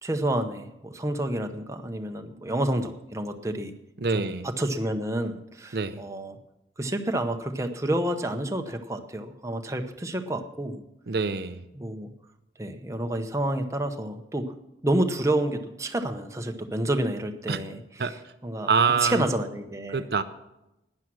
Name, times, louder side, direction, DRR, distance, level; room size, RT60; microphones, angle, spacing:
voice 1, 0.0-3.7 4.1-6.4 6.8-10.8 11.8-12.1 12.6-14.5 14.8-18.7 19.0-20.1, right 1 dB, 15° right, 5 dB, 0.8 m, -29 dB
voice 2, 4.0-4.5 5.7-6.0 11.1-11.6 17.5-17.6 18.0-18.1 18.7-19.2 19.9-20.2, right 5 dB, 60° right, 10 dB, 0.6 m, -25 dB
12.0 x 9.7 x 6.2 m, 0.92 s
head